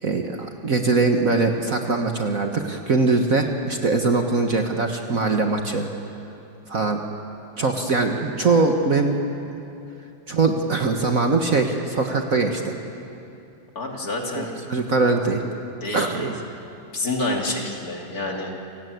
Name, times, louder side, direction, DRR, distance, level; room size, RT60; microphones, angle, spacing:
voice 1, 0.0-5.9 6.7-7.0 7.6-9.2 10.3-12.7 14.3-15.4 15.9-16.3, right 3 dB, 45° right, 4 dB, 1.6 m, -22 dB
voice 2, 13.7-14.5 15.8-16.3 16.9-18.5, left 2 dB, 45° left, 0 dB, 3.1 m, -28 dB
28.5 x 18.0 x 9.4 m, 2.8 s
omnidirectional pair, 2.2 m